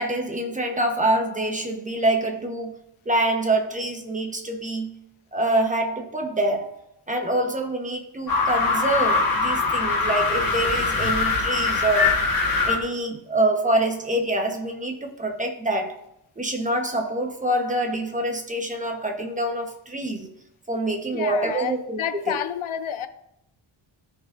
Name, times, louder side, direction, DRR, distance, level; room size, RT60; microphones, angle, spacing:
voice 1, 0.0-2.8 3.0-4.9 5.3-12.2 12.6-16.0 16.4-20.3 20.7-22.4, right 1 dB, 15° right, 1.1 m, -26 dB
sound 1, 8.3-12.8, left 4 dB, 45° left, 1.5 m, -22 dB
voice 2, 21.1-23.1, left 9 dB, 80° left, 0.8 m, -29 dB
16.0 x 5.4 x 2.6 m
wide cardioid pair, 130°, 48 cm